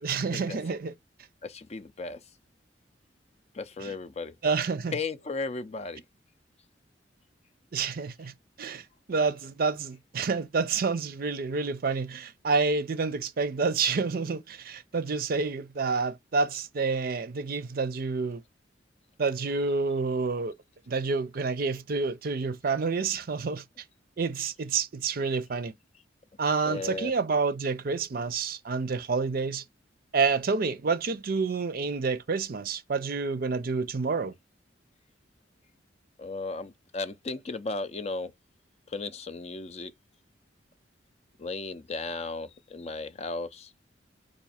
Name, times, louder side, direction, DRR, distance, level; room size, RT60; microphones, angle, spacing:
voice 1, 0.0-0.9 3.8-3.9 4.4-4.9 7.7-8.3 8.6-8.8 9.1-18.4 19.2-20.5 20.9-23.6 24.2-25.7 26.4-29.6 30.1-34.3, right 4 dB, 50° right, 0.5 m, -28 dB
voice 2, 1.4-2.2 3.5-4.4 4.9-6.0 26.6-27.1 36.2-38.3 38.9-39.9 41.4-43.7, left 3 dB, 35° left, 0.4 m, -35 dB
4.8 x 2.6 x 4.2 m
head